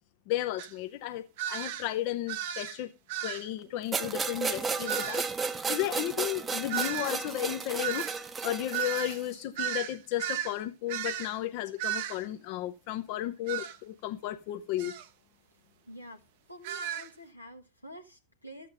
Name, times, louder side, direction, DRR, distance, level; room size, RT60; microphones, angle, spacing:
voice 1, 0.3-2.9 3.2-5.2 5.7-8.1 8.4-14.9, left 13 dB, 45° left, 0.8 m, -34 dB
sound 1, 0.6-0.7 1.4-1.9 2.3-2.8 3.1-3.5 4.8-5.3 6.7-10.6 10.9-11.4 11.8-12.2 13.5-13.8 14.8-15.1 16.6-17.1, right 11 dB, 50° right, 0.8 m, -35 dB
sound 2, 3.9-9.3, right 5 dB, 15° right, 0.9 m, -33 dB
voice 2, 15.9-16.2 16.5-18.7, equal, 90° left, 1.4 m, -47 dB
13.5 x 7.7 x 3.8 m
figure-of-eight pair, 90°, 0 cm